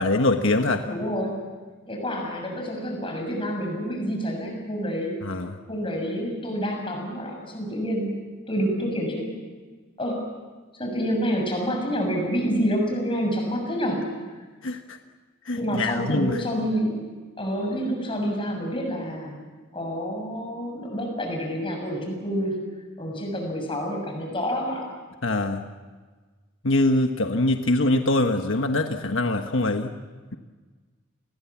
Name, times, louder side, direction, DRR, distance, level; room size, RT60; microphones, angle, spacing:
voice 1, 0.0-0.8 5.2-5.6 14.6-15.0 15.5-16.4 25.2-25.6 26.6-29.9, left 2 dB, 80° left, 5 dB, 1.3 m, -23 dB
voice 2, 0.8-1.4 1.9-5.1 5.7-8.2 8.5-9.3 10.0-10.3 10.8-14.1 15.5-17.1 17.4-19.4 19.7-22.6 23.0-24.9, equal, 25° left, 2 dB, 6.8 m, -28 dB
30.0 x 21.5 x 7.3 m, 1.4 s
head